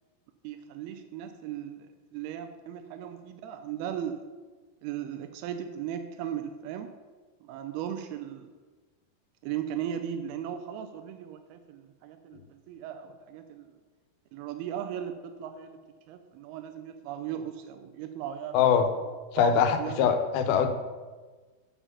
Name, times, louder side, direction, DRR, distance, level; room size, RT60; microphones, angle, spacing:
voice 1, 0.4-1.9 2.1-4.2 4.8-6.9 7.4-8.5 9.4-13.7 14.3-15.8 16.1-18.6 19.4-19.5 19.8-20.1, right 9 dB, 90° right, 7 dB, 2.5 m, -37 dB
voice 2, 18.5-18.9 19.3-20.7, left 7 dB, 85° left, 8 dB, 2.6 m, -23 dB
7.1 x 6.9 x 5.7 m, 1.3 s
omnidirectional pair, 4.3 m